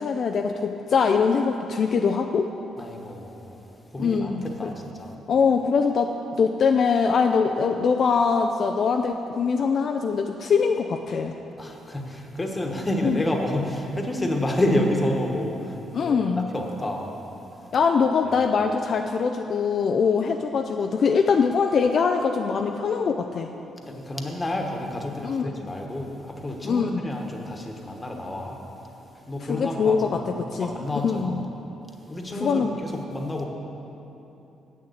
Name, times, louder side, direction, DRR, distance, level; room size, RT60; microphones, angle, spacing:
voice 1, 0.0-2.5 4.0-4.7 5.3-11.4 13.0-13.2 15.9-16.5 17.7-23.5 25.2-25.7 26.6-27.0 29.4-30.7 31.0-31.5 32.3-32.7, left 5 dB, 55° left, 4 dB, 0.4 m, -23 dB
voice 2, 2.8-3.6 3.9-5.1 11.6-16.2 16.5-17.1 23.8-28.6 29.3-31.4 32.0-33.5, left 1 dB, 20° left, 2 dB, 1.3 m, -29 dB
8.6 x 6.7 x 7.9 m, 3.0 s
cardioid pair, 90°, 0 cm